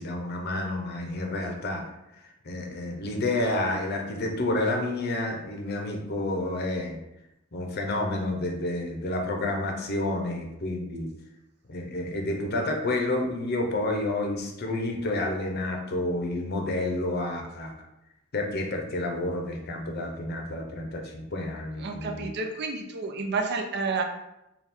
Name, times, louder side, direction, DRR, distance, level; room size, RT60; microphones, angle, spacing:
voice 1, 0.0-1.9 2.4-7.0 7.5-11.1 11.7-17.7 18.3-22.3, left 2 dB, 50° left, 2 dB, 0.6 m, -29 dB
voice 2, 21.8-24.0, right 4 dB, 55° right, 4 dB, 0.5 m, -30 dB
3.5 x 2.3 x 4.2 m, 0.89 s
head